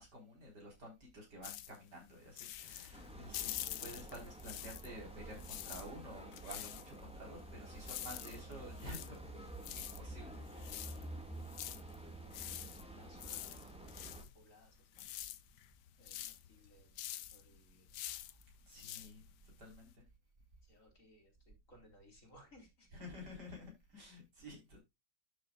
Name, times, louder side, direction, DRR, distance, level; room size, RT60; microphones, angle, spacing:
voice 1, 0.0-3.5 3.8-11.2 18.7-19.2 19.6-20.0 23.0-24.8, equal, 65° right, 4.9 m, -51 dB
sound 1, 1.4-5.0 5.3-19.9, left 13 dB, 75° left, 1.2 m, -47 dB
sound 2, 2.9-14.2, right 1 dB, 5° right, 1.8 m, -50 dB
voice 2, 12.5-15.1 16.0-17.9 18.9-19.1 20.6-22.9, equal, 45° left, 4.2 m, -64 dB
11.5 x 6.7 x 2.4 m
omnidirectional pair, 1.9 m